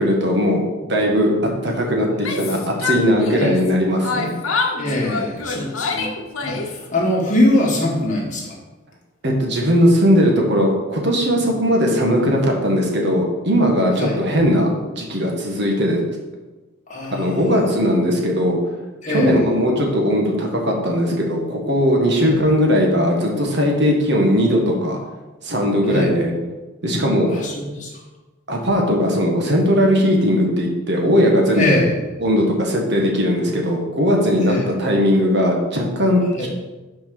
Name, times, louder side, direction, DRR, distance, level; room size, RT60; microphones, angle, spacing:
voice 1, 0.0-1.3 1.6-4.3 9.2-16.0 17.2-18.6 19.1-25.0 25.4-26.3 26.8-27.3 28.5-31.8 32.2-36.5, equal, 55° right, 0 dB, 1.5 m, -18 dB
Yell, 2.1-3.7 4.0-6.9, left 4 dB, 90° left, 0.9 m, -26 dB
voice 2, 4.8-6.1 6.4-8.6 14.0-14.2 16.9-17.6 19.0-19.4 22.2-22.3 25.8-26.2 27.3-27.9 31.6-32.0 34.5-34.7 36.3-36.5, left 1 dB, 35° left, -3 dB, 1.8 m, -22 dB
6.2 x 4.5 x 6.0 m, 1.1 s
head